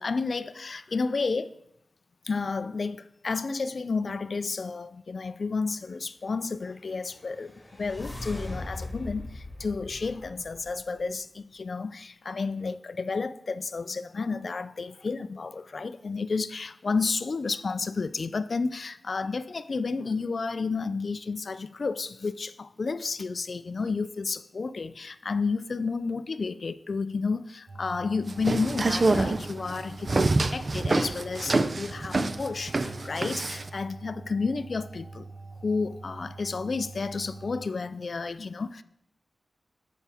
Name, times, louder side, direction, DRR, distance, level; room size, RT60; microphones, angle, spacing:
voice 1, 0.0-1.5 2.2-35.3 35.6-38.8, left 4 dB, 55° left, 0.3 m, -31 dB
sound 1, 6.9-11.1, left 2 dB, 25° left, 1.9 m, -40 dB
sound 2, 27.7-37.7, right 3 dB, 60° right, 0.9 m, -44 dB
sound 3, 28.3-33.7, right 3 dB, 45° right, 0.4 m, -26 dB
8.8 x 7.0 x 3.5 m
wide cardioid pair, 105°, 0 cm